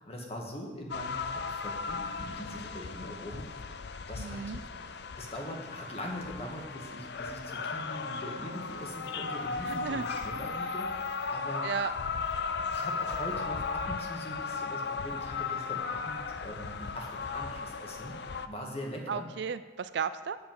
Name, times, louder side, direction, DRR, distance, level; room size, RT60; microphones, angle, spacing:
voice 1, 0.0-3.8 4.1-4.6 5.2-11.6 12.7-18.1 18.4-19.3, equal, 30° left, 0 dB, 1.7 m, -42 dB
sound 1, 0.9-18.5, left 5 dB, 55° left, 0.5 m, -36 dB
voice 2, 4.2-4.6 9.7-10.1 11.6-11.9 19.1-20.4, right 6 dB, 60° right, 13 dB, 0.4 m, -34 dB
8.4 x 7.0 x 7.8 m, 1.3 s
head